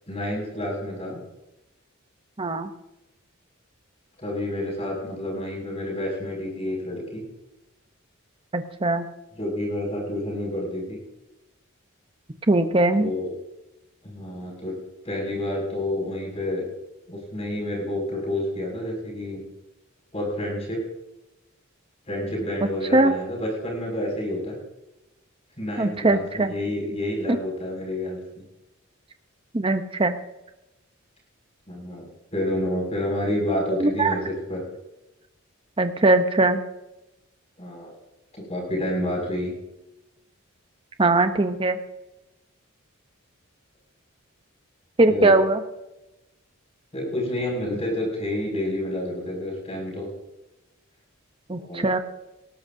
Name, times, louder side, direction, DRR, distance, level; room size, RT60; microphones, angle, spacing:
voice 1, 0.1-1.2 4.2-7.2 9.4-11.0 13.0-13.3 14.0-14.7 15.0-16.6 17.1-19.4 20.1-20.8 22.1-24.5 25.6-28.2 31.7-34.6 37.6-37.9 38.3-39.5 45.1-45.3 46.9-50.1 51.5-51.9, left 1 dB, 30° left, -1 dB, 6.3 m, -29 dB
voice 2, 2.4-2.7 8.5-9.1 12.5-13.1 22.9-23.1 25.8-26.5 29.5-30.2 33.7-34.2 35.8-36.6 41.0-41.8 45.0-45.6 51.5-52.0, right 2 dB, 25° right, 8 dB, 0.8 m, -20 dB
19.0 x 17.5 x 2.7 m, 0.97 s
head